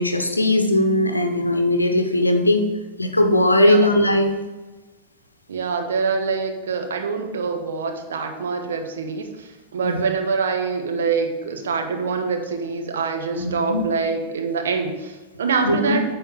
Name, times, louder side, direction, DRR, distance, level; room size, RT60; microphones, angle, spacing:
voice 1, 0.0-2.7 3.0-4.3 9.8-10.0 13.4-13.8 15.6-16.0, left 1 dB, 85° left, 5 dB, 0.7 m, -19 dB
voice 2, 5.5-16.0, right 5 dB, 65° right, 4 dB, 1.1 m, -25 dB
9.1 x 4.2 x 5.6 m, 1.2 s
figure-of-eight pair, 90°, 0 cm